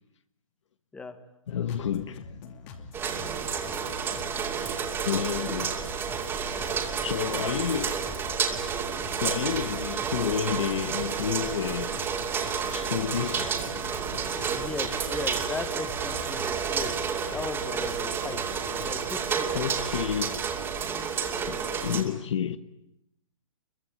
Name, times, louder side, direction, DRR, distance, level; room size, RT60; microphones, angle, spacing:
voice 1, 1.5-2.7 3.6-3.7 5.0-5.7 6.9-8.0 9.2-12.1 12.7-14.6 19.5-20.4 21.5-22.6, left 8 dB, 60° left, 1.5 m, -31 dB
sound 1, 1.5-19.2, left 4 dB, 30° left, 2.6 m, -45 dB
sound 2, 2.9-22.0, right 6 dB, 15° right, 2.7 m, -30 dB
voice 2, 14.5-16.9 17.3-18.4 18.8-19.5 21.4-21.7, left 3 dB, 5° left, 1.6 m, -37 dB
26.5 x 23.0 x 9.0 m
hypercardioid pair, 150°, 17 cm